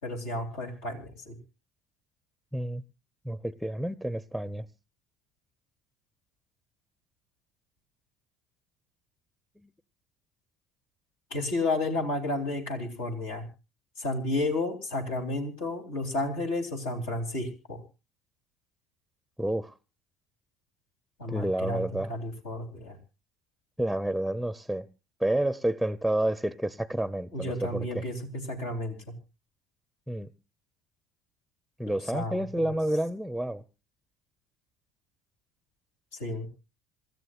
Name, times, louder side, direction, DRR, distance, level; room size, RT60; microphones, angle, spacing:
voice 1, 0.0-1.4 11.3-13.5 14.0-17.8 21.2-23.0 27.3-28.2 28.5-29.1 32.1-32.4 36.2-36.5, left 2 dB, 75° left, 3.4 m, -32 dB
voice 2, 2.5-2.8 3.2-4.7 9.6-9.7 19.4-19.7 21.3-22.1 23.8-24.9 25.2-28.0 30.1-30.3 31.8-33.6, right 1 dB, ahead, 0.7 m, -29 dB
27.0 x 13.5 x 2.5 m
hypercardioid pair, 65°, 0 cm